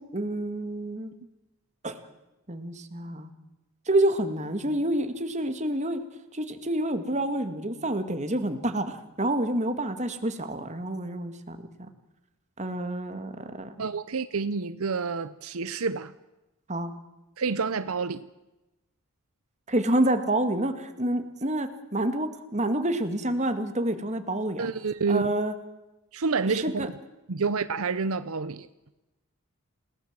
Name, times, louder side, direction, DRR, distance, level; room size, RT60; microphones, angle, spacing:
voice 1, 0.1-1.1 1.8-2.0 2.5-3.3 3.9-6.0 6.3-11.9 12.6-13.8 16.7-16.9 19.7-24.7 25.1-25.5 26.5-26.9, right 1 dB, 30° right, 2.0 m, -28 dB
voice 2, 13.8-16.1 17.4-18.3 24.6-25.3 26.1-26.9 27.3-28.7, right 4 dB, 75° right, 0.7 m, -28 dB
29.0 x 18.0 x 7.5 m
head